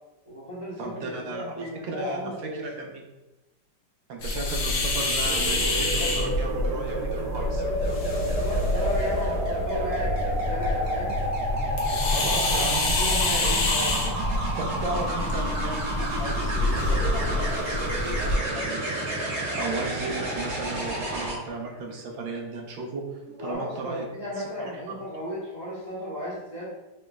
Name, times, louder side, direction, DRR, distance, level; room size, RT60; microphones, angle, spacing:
voice 1, 0.3-2.7 8.1-11.2 12.2-14.0 23.4-26.7, left 1 dB, 25° left, -8 dB, 1.1 m, -35 dB
voice 2, 0.8-3.0 4.1-7.6 11.9-12.8 14.6-24.0 24.6-24.8, right 3 dB, 80° right, 1 dB, 1.4 m, -35 dB
sound 1, 4.2-18.4, left 2 dB, 60° left, 1.1 m, -27 dB
sound 2, 5.2-21.3 23.3-23.5, right 1 dB, 40° right, 1.3 m, -30 dB
5.0 x 3.2 x 2.3 m, 1.0 s
omnidirectional pair, 2.1 m